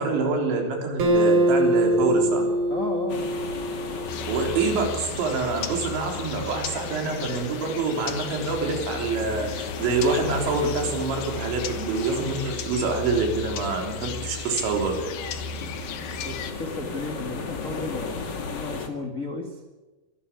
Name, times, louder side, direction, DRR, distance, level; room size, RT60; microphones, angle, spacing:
voice 1, 0.0-2.4 4.3-15.0, right 4 dB, 80° right, 3 dB, 5.9 m, -26 dB
Acoustic guitar, 1.0-4.4, right 1 dB, 55° right, 4.3 m, -23 dB
voice 2, 2.7-3.2 16.2-19.6, left 3 dB, 35° left, 2 dB, 1.4 m, -33 dB
sound 1, 3.1-18.9, left 4 dB, 85° left, 0.9 m, -37 dB
sound 2, 4.1-16.5, left 5 dB, 60° left, 2.6 m, -36 dB
25.0 x 13.0 x 8.5 m, 1.2 s
omnidirectional pair, 5.2 m